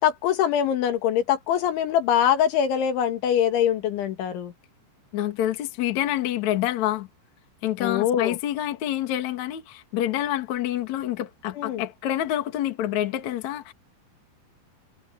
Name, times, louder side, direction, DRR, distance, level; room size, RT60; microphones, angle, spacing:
voice 1, 0.0-4.5 7.8-8.4 11.6-11.8, left 9 dB, 85° left, 4.5 m, -23 dB
voice 2, 5.1-7.1 7.6-13.7, left 12 dB, 50° left, 2.6 m, -27 dB
omnidirectional pair, 5.3 m